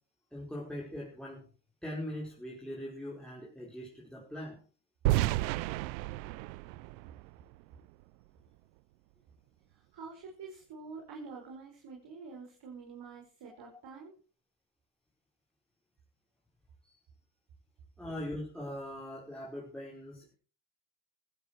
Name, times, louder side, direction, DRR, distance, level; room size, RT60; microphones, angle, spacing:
voice 1, 0.3-1.5 1.8-4.6 16.8-16.9 18.0-20.3, left 1 dB, ahead, -4 dB, 4.9 m, -41 dB
sound 1, 5.0-8.0, right 18 dB, 90° right, 0.7 m, -32 dB
voice 2, 9.7-14.1, right 4 dB, 55° right, 0 dB, 5.6 m, -47 dB
15.0 x 14.5 x 4.7 m, 0.38 s
supercardioid pair, 80°, 49 cm